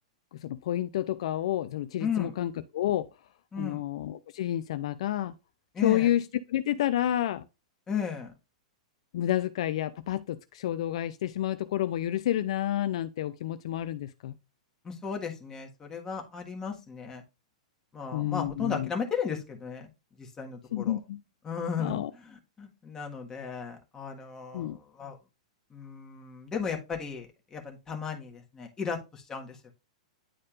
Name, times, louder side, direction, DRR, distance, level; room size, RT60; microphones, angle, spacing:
voice 1, 0.4-3.1 3.6-5.3 5.8-7.5 9.1-14.3 18.1-18.9 20.7-21.2 21.8-22.1 24.5-24.8, left 12 dB, 60° left, 0.4 m, -29 dB
voice 2, 2.0-2.3 3.5-3.8 5.7-6.1 7.9-8.3 14.8-17.2 17.9-19.9 20.2-21.0 21.4-25.2 25.7-29.7, left 6 dB, 20° left, 1.6 m, -35 dB
10.0 x 4.2 x 2.5 m
hypercardioid pair, 105°, 4 cm